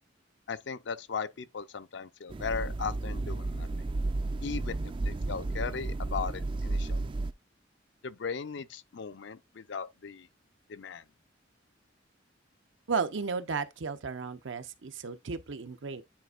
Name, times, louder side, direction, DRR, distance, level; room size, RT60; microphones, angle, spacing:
voice 1, 0.5-3.7 4.4-4.8 5.0-7.1 8.0-10.3 10.7-11.0, left 5 dB, 65° left, 0.5 m, -37 dB
sound 1, 2.3-7.3, right 2 dB, 25° right, 0.3 m, -33 dB
voice 2, 12.9-16.0, right 5 dB, 80° right, 0.7 m, -34 dB
9.5 x 4.3 x 2.4 m
head